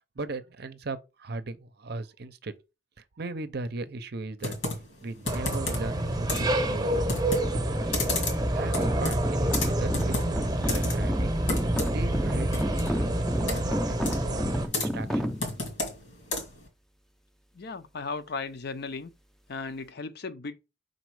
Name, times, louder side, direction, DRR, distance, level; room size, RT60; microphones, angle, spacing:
voice 1, 0.2-2.5 3.2-4.5 5.0-7.1 7.4-8.0 8.3-10.4 10.7-11.4 11.9-12.8 13.3-14.5 14.7-15.6, right 3 dB, 55° right, 0.6 m, -38 dB
Computer keyboard, 4.4-16.7, left 2 dB, 80° left, 2.1 m, -35 dB
sound 1, 5.3-14.7, right 1 dB, 20° right, 0.8 m, -28 dB
sound 2, 6.3-15.7, equal, ahead, 0.5 m, -34 dB
voice 2, 17.5-19.1 19.5-20.6, left 4 dB, 55° left, 0.6 m, -36 dB
5.2 x 4.0 x 4.7 m
head